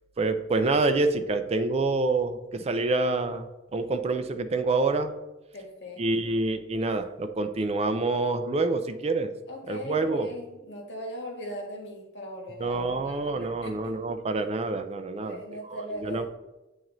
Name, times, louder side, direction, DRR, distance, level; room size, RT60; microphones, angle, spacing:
voice 1, 0.2-3.5 3.7-5.1 6.0-9.3 9.7-10.3 12.6-16.3, right 3 dB, 35° right, 9 dB, 0.4 m, -27 dB
voice 2, 5.5-6.3 9.5-14.0 15.1-16.3, equal, 65° left, -1 dB, 1.5 m, -40 dB
8.8 x 3.0 x 3.8 m, 1.0 s
head